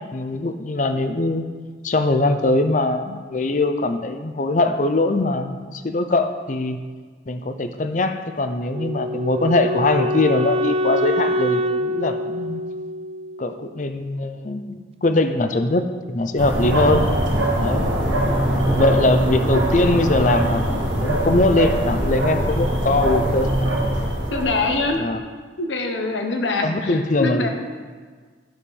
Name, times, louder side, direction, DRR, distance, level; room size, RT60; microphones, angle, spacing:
voice 1, 0.1-1.4 1.8-6.8 7.3-12.6 13.4-17.1 17.6-17.9 18.7-23.7 25.0-25.2 26.6-27.5, left 2 dB, 40° left, 8 dB, 0.6 m, -21 dB
Wind instrument woodwind instrument, 8.7-13.8, left 1 dB, 30° right, 0.4 m, -25 dB
sound 1, 16.4-24.9, right 1 dB, 85° right, 1.9 m, -22 dB
voice 2, 24.3-25.1 25.6-27.5, left 3 dB, 80° left, 4 dB, 1.2 m, -24 dB
11.5 x 6.6 x 5.3 m, 1.5 s
head